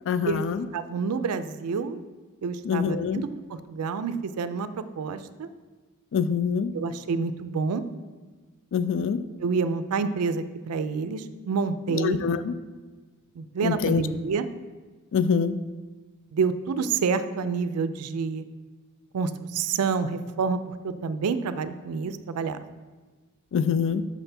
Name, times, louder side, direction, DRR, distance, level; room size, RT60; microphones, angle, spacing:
voice 1, 0.1-0.7 2.6-3.2 6.1-6.7 8.7-9.2 11.9-12.5 13.6-14.0 15.1-15.6 23.5-24.0, left 6 dB, 55° left, 13 dB, 0.3 m, -25 dB
voice 2, 0.7-2.0 2.4-5.5 6.7-7.8 9.4-12.2 13.4-14.5 16.3-18.4 19.1-22.6, right 5 dB, 80° right, 12 dB, 0.4 m, -28 dB
6.1 x 3.4 x 5.7 m, 1.3 s
head